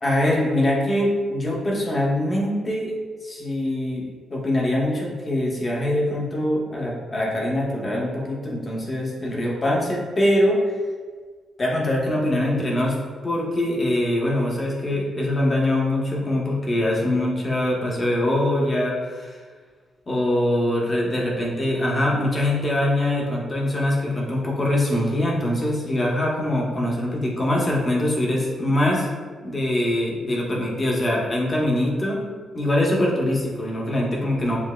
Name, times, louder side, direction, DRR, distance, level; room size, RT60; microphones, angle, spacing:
voice 1, 0.0-2.9 3.2-10.6 11.6-13.0 13.2-19.4 20.1-29.1 29.4-32.2 32.5-34.6, left 1 dB, 25° left, -3 dB, 1.0 m, -23 dB
7.0 x 2.7 x 2.3 m, 1.5 s
cardioid pair, 140°, 0 cm